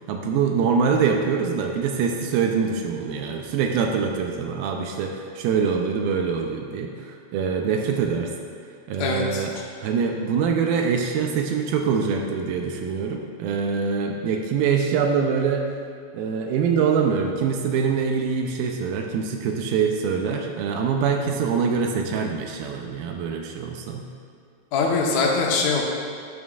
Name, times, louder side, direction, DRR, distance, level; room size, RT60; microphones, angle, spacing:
voice 1, 0.1-8.3 8.9-9.6 9.8-15.7 16.1-24.1, right 6 dB, 80° right, 2 dB, 2.4 m, -24 dB
voice 2, 9.0-9.4 24.7-25.8, left 4 dB, 65° left, -2 dB, 1.8 m, -22 dB
12.5 x 7.2 x 2.4 m, 2.4 s
omnidirectional pair, 4.4 m